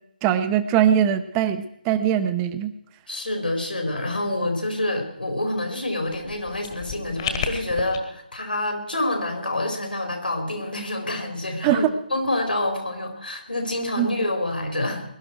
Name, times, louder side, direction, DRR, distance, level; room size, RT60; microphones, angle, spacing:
voice 1, 0.2-2.7 11.6-11.9 14.0-14.1, right 10 dB, 15° right, 11 dB, 0.8 m, -21 dB
voice 2, 3.1-11.8 12.1-15.0, left 1 dB, 75° left, 3 dB, 4.5 m, -27 dB
sound 1, 6.0-8.0, left 7 dB, 30° left, 1.6 m, -32 dB
22.0 x 12.0 x 4.6 m, 0.80 s
figure-of-eight pair, 145°, 5 cm